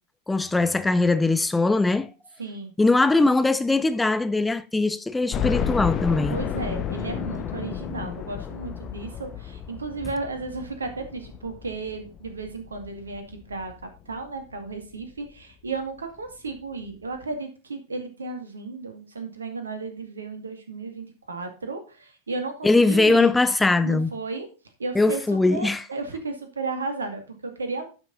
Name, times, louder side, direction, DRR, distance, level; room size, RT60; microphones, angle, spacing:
voice 1, 0.3-2.1 2.8-6.4 22.6-24.1 24.9-25.8, left 3 dB, 10° left, 0.6 m, -21 dB
voice 2, 2.4-2.7 6.3-13.7 14.1-23.3 23.8-24.5 24.8-27.9, right 3 dB, 75° right, 2.2 m, -34 dB
sound 1, 5.3-14.2 14.7-14.8 15.2-15.3 16.5-16.6 16.8-16.9, left 8 dB, 30° left, 1.1 m, -32 dB
11.5 x 6.2 x 4.0 m
figure-of-eight pair, 90°, 0 cm